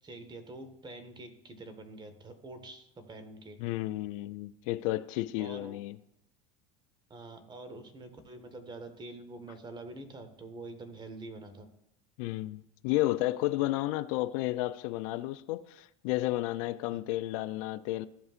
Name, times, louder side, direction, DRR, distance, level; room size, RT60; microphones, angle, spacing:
voice 1, 0.0-3.6 5.4-5.8 7.1-11.7 16.9-17.0, right 2 dB, 25° right, 1.5 m, -46 dB
voice 2, 3.6-6.0 12.2-18.1, left 17 dB, 70° left, 0.4 m, -32 dB
14.5 x 5.4 x 2.5 m
hypercardioid pair, 85°, 18 cm